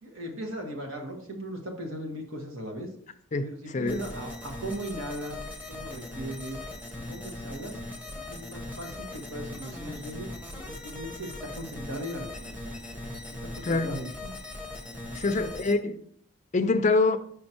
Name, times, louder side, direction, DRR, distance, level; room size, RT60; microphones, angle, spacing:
voice 1, 0.0-2.9 3.4-6.6 7.1-7.8 8.3-10.3 10.7-12.7 13.4-14.3 15.1-15.5, right 1 dB, 75° right, 1.5 m, -38 dB
voice 2, 3.3-4.0 13.6-14.0 15.1-16.0 16.5-17.2, left 3 dB, 35° left, 0.4 m, -25 dB
sound 1, 3.9-15.7, left 2 dB, 5° right, 0.9 m, -40 dB
5.6 x 5.3 x 4.4 m
head